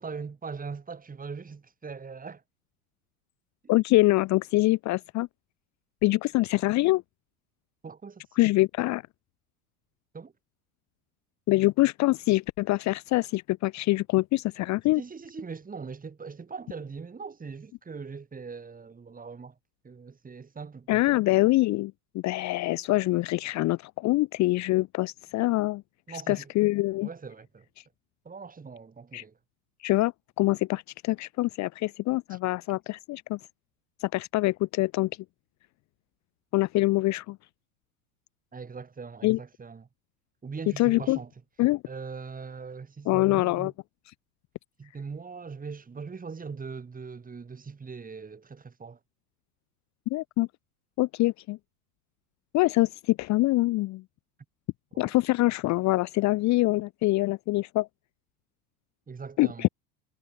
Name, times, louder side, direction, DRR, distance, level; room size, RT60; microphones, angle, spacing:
voice 1, 0.0-2.4 7.8-8.2 10.1-10.3 15.0-19.6 19.8-21.2 26.1-26.5 27.0-27.7 28.2-29.4 32.3-32.6 38.5-39.9 40.4-41.3 41.9-43.7 44.8-49.0 54.9-55.2 59.1-59.7, right 5 dB, 20° right, 3.9 m, -41 dB
voice 2, 3.7-5.3 6.0-7.0 8.4-9.0 11.5-15.0 20.9-25.8 26.3-27.1 29.1-29.2 29.8-30.1 30.4-33.4 34.0-35.1 36.5-37.4 39.2-39.4 40.8-41.2 41.6-41.8 43.1-43.7 50.1-50.5 51.0-51.6 52.5-54.0 55.0-57.9 59.4-59.7, left 19 dB, 40° left, 0.7 m, -24 dB
hypercardioid pair, 90°, 45 cm